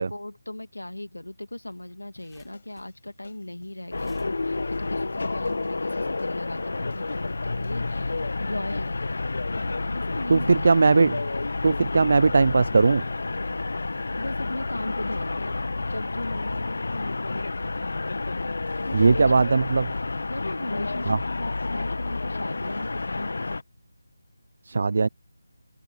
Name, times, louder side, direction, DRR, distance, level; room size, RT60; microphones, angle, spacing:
voice 1, 0.0-8.1 8.4-9.2 9.9-10.7 14.2-17.9 18.8-19.5 20.3-23.3, left 1 dB, 85° left, 2.4 m, -37 dB
sound 1, 1.7-5.7, left 11 dB, 5° left, 8.0 m, -65 dB
sound 2, 2.2-7.9, left 5 dB, 45° left, 5.4 m, -56 dB
sound 3, 3.9-23.6, left 3 dB, 60° left, 1.5 m, -30 dB
voice 2, 10.3-11.2 11.6-13.0 18.9-19.9 21.1-21.2 24.6-25.1, right 4 dB, 50° right, 0.3 m, -19 dB
open air
figure-of-eight pair, 160°, 0 cm